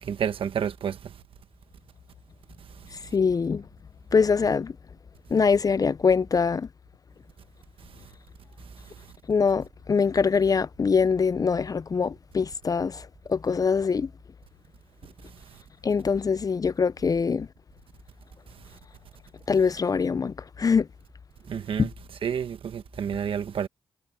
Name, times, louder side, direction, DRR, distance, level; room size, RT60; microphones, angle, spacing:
voice 1, 0.0-1.1 21.5-21.9 22.2-23.7, right 8 dB, 70° right, 1.3 m, -29 dB
voice 2, 2.9-3.6 4.1-4.7 5.3-6.7 9.3-14.1 15.8-17.5 19.5-20.9 21.8-21.9, left 5 dB, 40° left, 0.5 m, -23 dB
cardioid pair, 60°, 10 cm